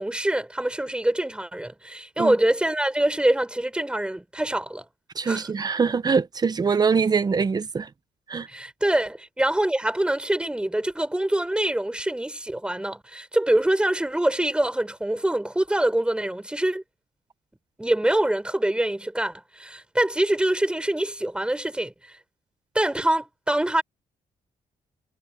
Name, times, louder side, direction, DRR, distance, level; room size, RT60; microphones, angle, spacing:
voice 1, 0.0-4.8 5.3-5.4 8.5-16.8 17.8-21.9 22.7-23.8, right 1 dB, 5° right, 6.3 m, -24 dB
voice 2, 5.1-7.9 8.3-8.5, right 5 dB, 30° right, 1.0 m, -23 dB
cardioid pair, 140°, 14 cm